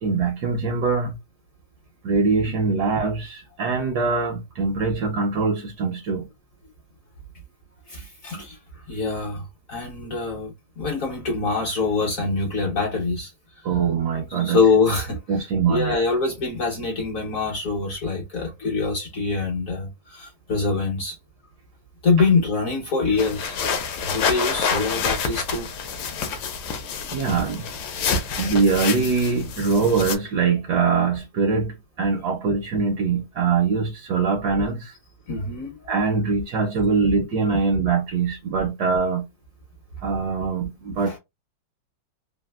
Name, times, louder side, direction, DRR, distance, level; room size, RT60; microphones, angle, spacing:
voice 1, 0.0-1.2 2.0-6.3 13.6-14.6 15.3-16.0 27.1-27.7 28.4-34.9 35.9-39.3 40.0-41.1, right 4 dB, 70° right, 1.0 m, -23 dB
voice 2, 7.9-8.6 8.9-13.3 13.6-13.7 14.3-15.2 15.7-21.2 22.0-23.6 24.0-25.7 35.3-35.8 41.0-41.2, left 4 dB, 60° left, 0.9 m, -24 dB
sound 1, 23.2-30.2, left 5 dB, 75° left, 1.3 m, -28 dB
3.3 x 2.5 x 2.3 m
omnidirectional pair, 2.2 m